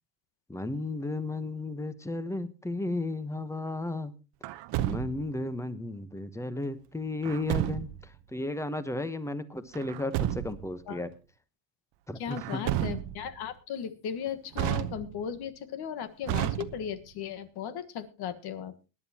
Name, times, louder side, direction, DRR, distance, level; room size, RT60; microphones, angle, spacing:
voice 1, 0.5-4.1 4.8-11.1 12.1-12.6, left 2 dB, 5° left, 13 dB, 1.0 m, -34 dB
Truck, 4.4-5.4 7.2-8.1 9.7-10.7 12.3-13.3 14.5-15.4 16.2-17.1, right 13 dB, 60° right, 1.0 m, -32 dB
voice 2, 12.2-18.7, left 8 dB, 50° left, 10 dB, 1.5 m, -36 dB
21.5 x 10.5 x 2.9 m, 0.31 s
supercardioid pair, 120°, 49 cm